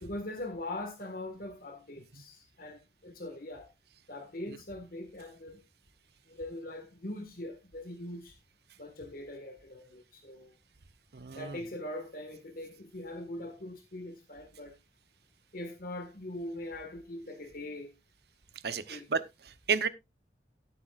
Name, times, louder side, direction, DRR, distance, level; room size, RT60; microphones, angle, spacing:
voice 1, 0.0-3.7 4.1-5.6 6.3-8.4 8.8-10.5 11.3-14.7 15.5-17.9 18.7-19.1, left 1 dB, 55° left, 1.6 m, -42 dB
voice 2, 11.1-11.6 18.6-19.9, right 5 dB, 65° right, 0.8 m, -32 dB
17.5 x 8.2 x 2.4 m
head